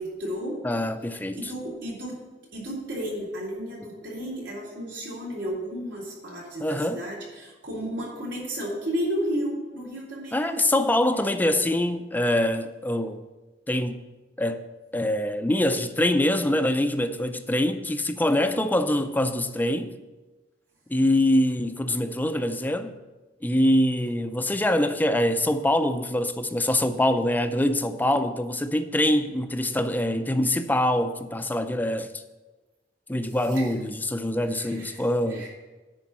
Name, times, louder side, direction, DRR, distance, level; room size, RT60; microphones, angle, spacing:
voice 1, 0.0-0.6 1.3-2.1 2.5-10.9 33.2-33.7 34.5-35.5, equal, 80° right, 3.6 m, -33 dB
voice 2, 0.6-1.5 6.6-7.0 10.3-13.2 13.7-14.0 14.4-14.6 14.9-20.0 20.9-23.0 23.4-32.2 33.1-35.5, left 1 dB, 10° left, 0.4 m, -24 dB
10.0 x 4.5 x 7.4 m
head